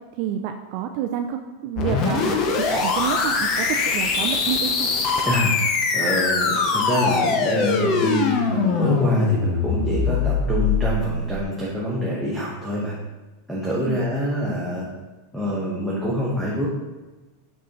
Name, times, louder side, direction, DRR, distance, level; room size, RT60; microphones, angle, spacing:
voice 1, 0.2-4.9 13.8-14.0, right 9 dB, 45° right, 5 dB, 0.3 m, -28 dB
sound 1, 1.8-11.4, left 4 dB, 35° left, 0.7 m, -22 dB
voice 2, 5.9-12.9 13.5-14.9 15.3-16.7, equal, ahead, -7 dB, 1.0 m, -25 dB
6.0 x 5.4 x 3.0 m, 1.2 s
supercardioid pair, 155°, 0 cm